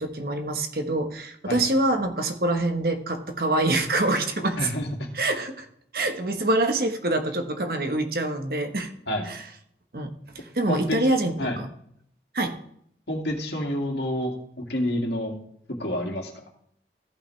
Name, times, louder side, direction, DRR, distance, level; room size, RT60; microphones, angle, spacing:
voice 1, 0.0-4.6 5.2-5.7 5.9-8.9 9.3-9.4 9.9-11.5 12.3-12.6, right 2 dB, 55° right, 6 dB, 1.1 m, -25 dB
voice 2, 4.6-5.1 9.1-9.2 10.7-11.0 11.4-11.6 13.1-15.3 15.8-16.4, left 1 dB, 75° left, 1 dB, 2.1 m, -28 dB
15.0 x 5.8 x 3.2 m, 0.68 s
head